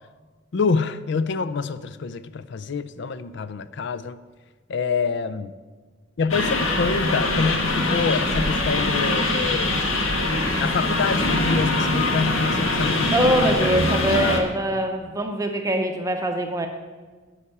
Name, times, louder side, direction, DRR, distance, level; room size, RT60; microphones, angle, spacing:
voice 1, 0.5-4.2 4.7-5.5 6.2-9.8 10.6-13.2, left 4 dB, 60° left, 14 dB, 0.4 m, -26 dB
sound 1, 6.3-14.4, left 2 dB, 85° left, 1.5 m, -23 dB
voice 2, 13.1-16.7, right 1 dB, 15° right, 4 dB, 0.6 m, -23 dB
9.9 x 5.5 x 8.4 m, 1.4 s
head